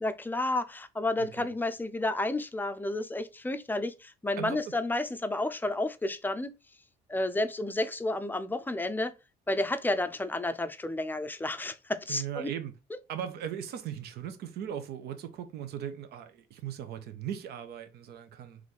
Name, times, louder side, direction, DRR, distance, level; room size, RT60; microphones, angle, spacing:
voice 1, 0.0-6.5 7.1-9.1 9.5-12.5 12.9-13.0, left 2 dB, 10° left, 0.5 m, -31 dB
voice 2, 1.2-1.5 4.4-4.6 12.1-12.7 13.1-18.7, right 9 dB, 75° right, 0.9 m, -38 dB
4.0 x 3.1 x 3.3 m
cardioid pair, 110°, 17 cm